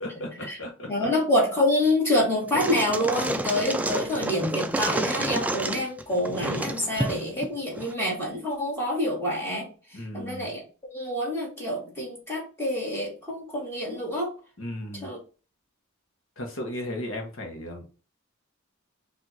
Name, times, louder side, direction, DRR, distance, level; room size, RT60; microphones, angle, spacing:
voice 1, 0.0-1.1 9.9-10.5 14.6-15.1 16.4-17.9, left 1 dB, 75° left, 2 dB, 1.2 m, -35 dB
voice 2, 0.9-10.6 10.9-14.3 15.0-15.2, left 1 dB, 10° left, -4 dB, 2.1 m, -27 dB
sound 1, 2.4-7.9, right 1 dB, 10° right, 0.3 m, -29 dB
4.7 x 2.8 x 4.0 m, 0.36 s
head